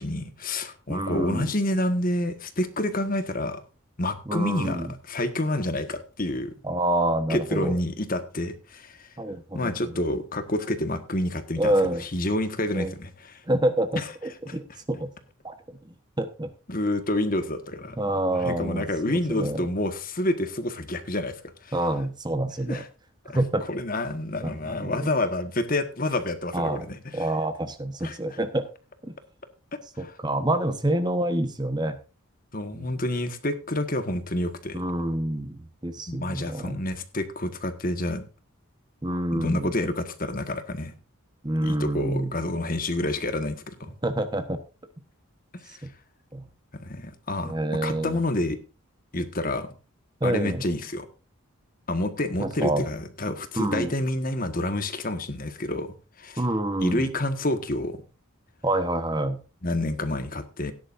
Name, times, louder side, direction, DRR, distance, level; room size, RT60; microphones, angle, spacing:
voice 1, 0.0-3.6 4.0-6.5 7.3-9.1 9.5-11.7 12.0-13.4 13.9-14.1 14.5-14.6 16.7-18.0 18.3-21.3 21.6-21.7 22.7-22.9 23.3-23.4 23.7-27.3 28.0-28.2 29.7-30.2 32.5-34.8 36.1-38.2 39.3-40.9 41.6-44.0 45.5-45.9 46.8-47.5 47.8-48.6 49.1-49.7 50.2-51.1 51.9-56.4 56.8-58.0 59.6-60.7, left 1 dB, 40° left, 9 dB, 1.5 m, -28 dB
voice 2, 0.9-1.5 4.3-4.9 6.6-7.7 9.2-9.7 11.6-12.0 12.7-12.9 13.5-15.1 15.4-16.5 18.0-19.6 21.7-22.8 23.3-23.6 24.4-25.1 26.5-26.8 27.1-28.6 29.0-29.1 30.0-32.0 32.7-32.9 34.7-36.8 39.0-39.7 41.4-42.3 44.0-44.6 45.8-45.9 46.3-46.5 47.4-48.2 50.2-50.6 52.4-52.9 53.6-53.9 56.4-57.0 58.6-59.4, right 1 dB, 20° right, 9 dB, 1.1 m, -27 dB
17.0 x 10.5 x 2.6 m, 0.32 s
head